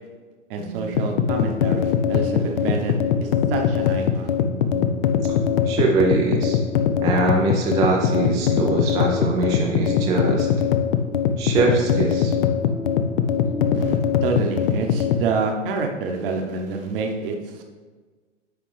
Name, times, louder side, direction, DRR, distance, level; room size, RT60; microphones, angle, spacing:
voice 1, 0.5-4.4 13.7-17.6, right 4 dB, 45° right, 3 dB, 1.0 m, -28 dB
sound 1, 0.6-16.2, equal, 70° left, 1.3 m, -37 dB
sound 2, 0.9-15.3, left 8 dB, 45° left, 0.5 m, -21 dB
voice 2, 5.7-6.6 7.0-10.5 11.4-12.3, right 4 dB, 10° right, -1 dB, 0.4 m, -22 dB
9.4 x 3.4 x 3.3 m, 1.4 s
hypercardioid pair, 110°, 37 cm